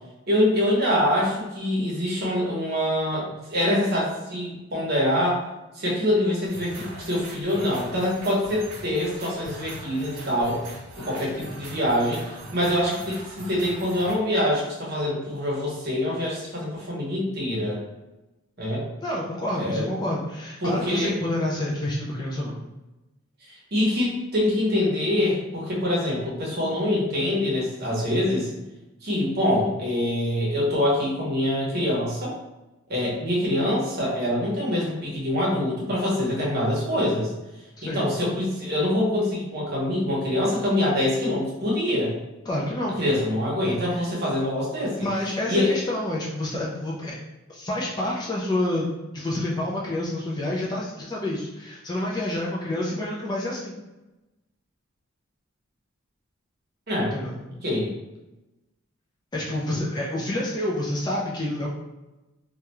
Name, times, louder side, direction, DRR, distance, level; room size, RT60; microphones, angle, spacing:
voice 1, 0.3-5.4 5.8-10.6 11.0-12.2 12.5-17.8 18.6-18.9 19.5-19.8 20.6-21.2 23.5-28.5 29.0-32.3 32.9-37.3 37.8-42.1 43.0-45.0 45.5-45.8 56.9-57.1 57.6-57.9, left 1 dB, 45° right, -4 dB, 0.8 m, -25 dB
sound 1, 6.4-14.1, right 1 dB, 85° right, 0.6 m, -41 dB
voice 2, 19.0-22.6 37.8-38.0 42.5-42.9 43.9-44.0 44.8-47.1 47.5-48.9 49.1-53.7 57.1-57.4 59.3-61.7, left 1 dB, 20° left, -4 dB, 0.3 m, -28 dB
2.3 x 2.1 x 2.9 m, 1.0 s
head